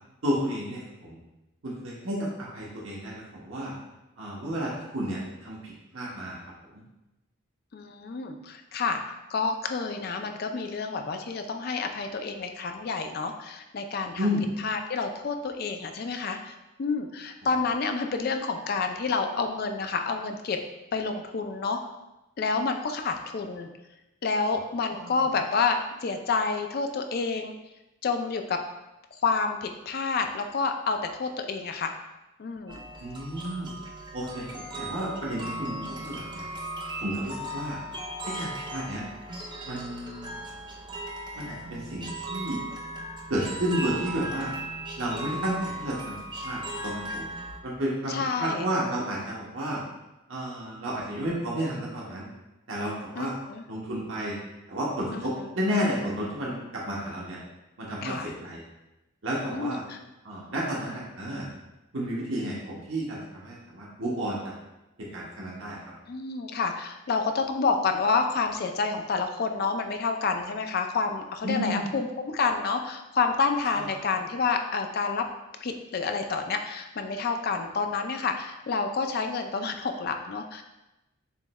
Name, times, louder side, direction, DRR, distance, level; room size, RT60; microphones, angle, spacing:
voice 1, 0.2-1.2 1.6-3.7 4.2-5.6 5.9-6.4 6.7-6.8 14.2-14.4 24.9-25.1 33.0-33.7 34.1-36.5 37.0-37.8 38.3-39.0 39.6-40.3 41.4-42.6 43.3-44.5 45.0-46.1 46.4-47.3 47.6-49.8 50.3-52.3 52.7-53.3 53.7-54.3 54.7-57.4 57.8-58.6 59.2-59.8 60.2-61.5 61.9-64.5 65.0-65.8 71.4-71.8 73.7-73.8, equal, 65° right, -5 dB, 1.0 m, -31 dB
voice 2, 7.7-9.0 9.3-14.3 14.6-20.6 20.9-21.8 22.4-23.7 24.2-27.5 28.0-28.6 29.2-31.9 32.4-32.8 48.1-48.7 53.2-53.6 55.1-55.5 58.0-58.3 59.5-60.0 66.1-75.3 75.6-80.6, left 4 dB, 45° left, 6 dB, 0.3 m, -29 dB
sound 1, 32.7-47.6, right 1 dB, 20° right, 0.4 m, -37 dB
6.9 x 3.1 x 2.2 m, 0.98 s
head